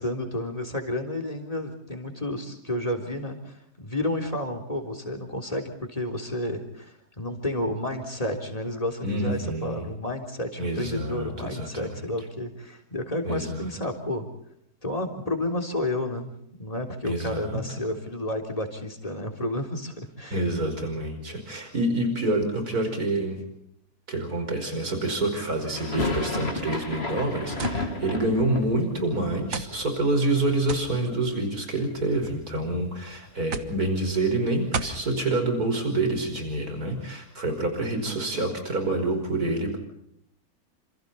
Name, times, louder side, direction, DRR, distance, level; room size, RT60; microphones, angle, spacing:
voice 1, 0.0-14.3 14.8-16.3 16.6-20.4, left 1 dB, 25° left, 3 dB, 3.8 m, -31 dB
voice 2, 9.0-9.9 10.6-12.0 13.2-13.6 17.0-17.6 20.3-23.4 24.1-39.8, right 2 dB, 85° right, 6 dB, 5.7 m, -27 dB
sound 1, 25.7-31.7 31.9-32.8 33.0-33.1 33.4-35.5, left 2 dB, 45° left, 3.0 m, -34 dB
sound 2, 27.6-27.8 28.7-28.8 29.5-29.8 30.7-30.9 31.9-32.4 33.5-33.8 34.7-35.0, right 5 dB, 65° right, 1.7 m, -32 dB
29.0 x 27.5 x 4.2 m, 0.72 s
omnidirectional pair, 1.6 m